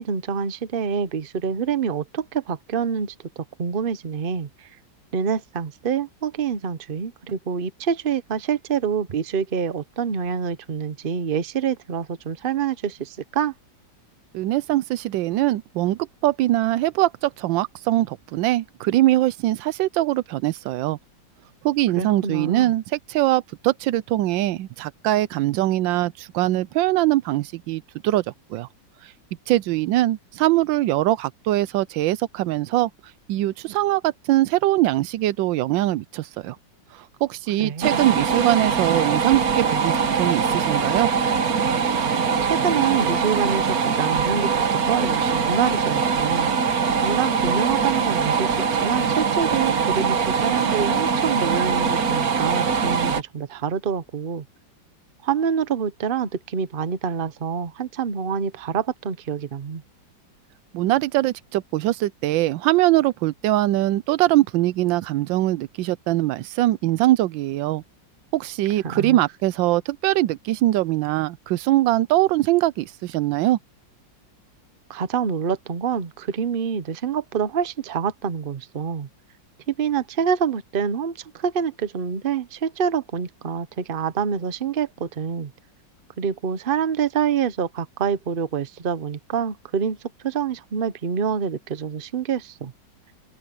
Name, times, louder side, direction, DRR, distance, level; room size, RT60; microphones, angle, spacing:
voice 1, 0.0-4.7 5.1-13.5 22.0-22.7 37.6-38.0 42.4-46.5 47.0-54.4 55.2-59.8 68.8-69.2 74.9-79.1 79.7-85.5 86.2-90.0 90.2-92.7, right 7 dB, 40° right, 0.9 m, -26 dB
voice 2, 14.3-21.0 21.6-22.8 23.1-28.2 28.5-28.7 29.5-32.9 33.3-36.6 37.2-41.1 60.7-67.8 68.3-73.6, right 15 dB, 85° right, 1.3 m, -22 dB
sound 1, 37.8-53.2, right 6 dB, 55° right, 1.6 m, -22 dB
open air
omnidirectional pair, 2.0 m